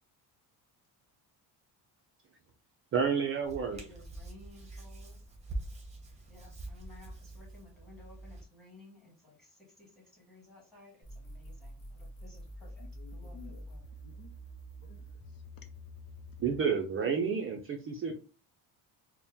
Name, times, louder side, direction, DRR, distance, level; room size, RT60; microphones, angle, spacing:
voice 1, 2.9-3.8 16.4-18.1, right 6 dB, 30° right, 0.5 m, -30 dB
Hands, 3.4-8.4, right 2 dB, 15° right, 0.9 m, -44 dB
voice 2, 3.7-5.2 6.3-9.5 9.8-13.8, left 2 dB, ahead, 1.6 m, -57 dB
sound 1, 11.0-16.6, equal, 40° left, 1.6 m, -47 dB
voice 3, 12.4-13.6 14.0-14.4 14.8-15.7, left 6 dB, 55° left, 0.7 m, -56 dB
4.3 x 2.1 x 3.5 m
cardioid pair, 160°, 42 cm